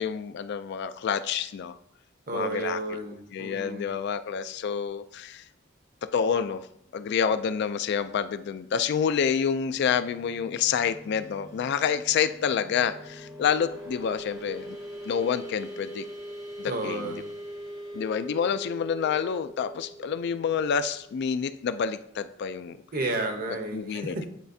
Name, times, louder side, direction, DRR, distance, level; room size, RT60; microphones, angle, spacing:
voice 1, 0.0-1.7 2.3-2.8 3.3-5.4 6.0-6.7 6.9-14.8 15.1-16.1 16.6-17.1 17.9-22.8 23.7-24.2, left 7 dB, 55° left, 12 dB, 0.3 m, -28 dB
voice 2, 2.3-3.9 16.6-17.3 22.9-24.3, right 2 dB, 45° right, 5 dB, 0.8 m, -32 dB
sound 1, 9.5-21.8, equal, 20° right, 0.7 m, -42 dB
9.3 x 4.2 x 2.7 m, 0.74 s
head